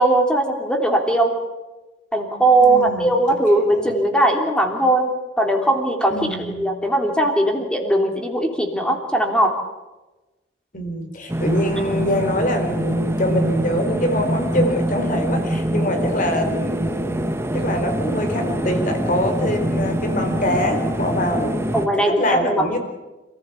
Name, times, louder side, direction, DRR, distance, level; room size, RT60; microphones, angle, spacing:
voice 1, 0.0-1.3 2.1-5.1 5.4-6.1 6.5-9.6 21.7-22.8, right 1 dB, 5° left, 2 dB, 3.3 m, -19 dB
voice 2, 2.6-3.2 3.7-4.0 6.1-6.7 10.7-17.1 17.5-21.6 22.0-22.8, left 1 dB, 45° left, 5 dB, 4.2 m, -24 dB
sound 1, 11.3-21.9, right 1 dB, 15° right, 1.3 m, -24 dB
27.5 x 15.5 x 8.5 m, 1.1 s
head